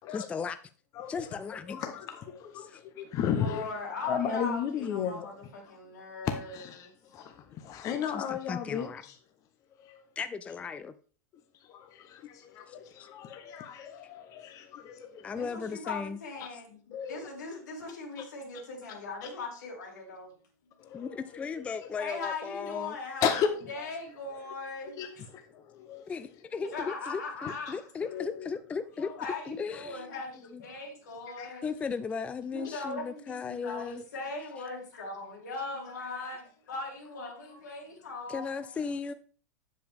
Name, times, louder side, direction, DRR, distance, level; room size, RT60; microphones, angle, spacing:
voice 1, 0.1-0.6 1.1-1.8 2.7-2.8 8.1-9.0 10.2-10.9 12.7-12.8 15.2-16.2 20.9-23.0 26.1-29.1 29.5-30.1 30.5-30.6 31.6-34.0 38.3-39.1, left 5 dB, 15° left, 0.3 m, -36 dB
voice 2, 0.9-5.8 6.2-9.2 9.8-10.0 11.6-15.5 16.4-16.5 16.9-17.3 18.2-18.3 19.2-19.3 20.8-22.0 23.2-23.5 23.8-23.9 24.9-26.1 26.7-26.8 27.5-27.6 28.0-28.6 31.4-31.5 32.6-32.8, left 8 dB, 35° left, 0.9 m, -35 dB
voice 3, 3.3-6.9 15.3-16.8 17.0-20.3 22.0-23.3 23.7-25.2 26.7-27.9 29.0-31.7 32.5-38.9, left 3 dB, 85° left, 3.0 m, -39 dB
7.6 x 7.0 x 3.5 m
supercardioid pair, 130°, 9 cm